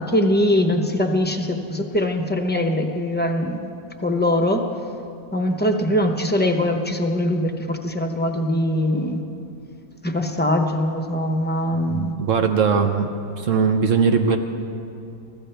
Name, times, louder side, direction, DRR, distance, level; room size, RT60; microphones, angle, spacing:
voice 1, 0.0-3.7 4.0-4.6 5.3-9.2 10.0-12.1, left 1 dB, 10° left, 4 dB, 0.6 m, -22 dB
voice 2, 11.9-13.1 13.4-14.4, right 6 dB, 60° right, 6 dB, 1.1 m, -20 dB
23.5 x 14.5 x 3.4 m, 2.6 s
omnidirectional pair, 1.5 m